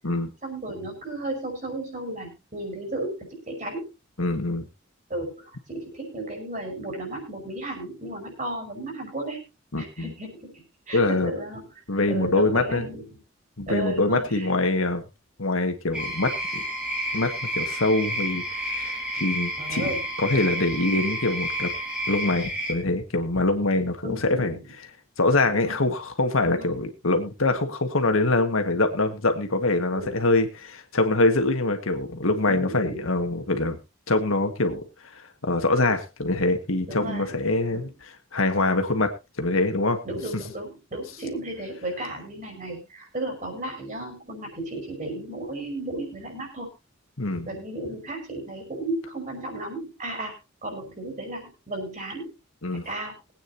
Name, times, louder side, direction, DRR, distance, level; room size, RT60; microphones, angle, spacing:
voice 1, 0.4-3.9 5.1-9.4 9.8-11.7 12.1-13.2 13.7-14.5 19.6-20.1 24.0-24.7 25.5-25.8 26.4-26.7 29.9-30.2 32.5-33.1 36.9-37.3 37.7-37.9 40.1-46.7 47.5-50.3 50.6-52.3 52.7-53.1, right 1 dB, 35° right, 3 dB, 5.2 m, -34 dB
voice 2, 4.2-4.7 9.7-10.1 10.9-11.3 11.9-12.9 13.6-15.0 15.4-16.6 17.1-19.8 20.2-21.7 22.1-24.6 25.2-33.8 34.1-37.9 38.3-39.1 39.4-40.0 47.2-47.5 52.6-52.9, left 2 dB, 80° left, 6 dB, 1.8 m, -24 dB
sound 1, 15.9-22.7, equal, 5° right, 2.3 m, -31 dB
Trumpet, 16.0-22.4, right 6 dB, 65° right, 2.7 m, -40 dB
21.5 x 9.1 x 2.8 m, 0.26 s
head